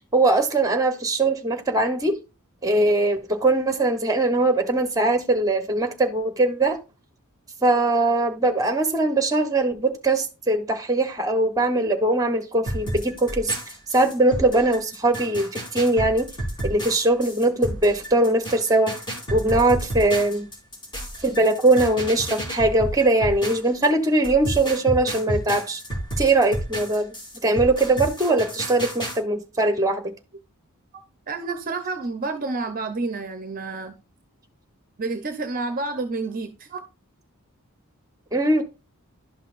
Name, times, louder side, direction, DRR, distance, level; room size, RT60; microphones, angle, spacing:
voice 1, 0.1-2.2 2.6-6.8 7.6-13.6 13.9-16.3 16.6-19.0 19.3-20.5 21.2-25.8 26.2-27.1 27.4-30.1 38.3-38.6, right 2 dB, 15° right, 1.0 m, -21 dB
sound 1, 12.7-23.9 24.2-29.2, right 1 dB, 20° left, 2.8 m, -31 dB
voice 2, 31.3-34.0 35.0-36.8, right 3 dB, 40° right, 0.6 m, -29 dB
11.5 x 5.7 x 2.5 m
head